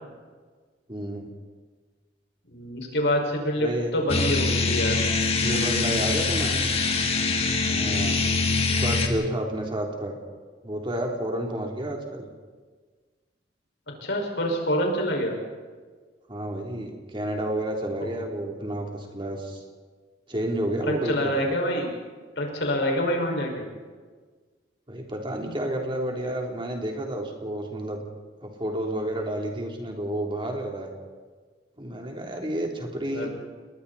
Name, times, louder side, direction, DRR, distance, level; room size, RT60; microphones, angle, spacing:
voice 1, 0.9-1.3 3.6-3.9 5.4-6.7 7.7-8.3 8.8-10.2 10.6-12.3 16.3-19.6 20.3-21.3 24.9-28.0 28.4-30.9 31.8-33.3, right 1 dB, 30° right, 1 dB, 3.4 m, -30 dB
voice 2, 2.5-3.7 3.9-5.0 14.0-15.3 21.0-21.9 22.4-23.7 33.1-33.3, equal, 70° left, 1 dB, 5.5 m, -26 dB
sound 1, 4.1-9.1, left 3 dB, 35° left, 2.3 m, -24 dB
29.0 x 21.5 x 4.2 m, 1.5 s
head